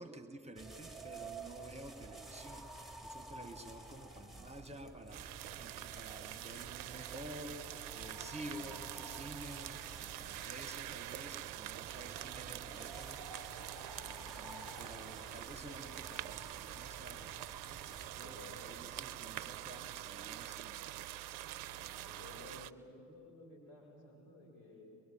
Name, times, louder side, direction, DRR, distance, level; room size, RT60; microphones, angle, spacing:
voice 1, 0.0-7.6 7.9-13.2 14.3-17.4 17.7-18.3 18.6-20.9, right 1 dB, 20° right, 6 dB, 1.6 m, -51 dB
sound 1, 0.6-19.0, right 2 dB, ahead, 2.4 m, -52 dB
sound 2, 5.1-22.7, right 13 dB, 70° right, 0.6 m, -46 dB
voice 2, 8.4-8.7 13.9-14.2 18.2-18.9 21.5-24.8, left 2 dB, 70° left, 1 dB, 5.9 m, -56 dB
24.5 x 23.0 x 7.3 m, 2.7 s
hypercardioid pair, 50°, 34 cm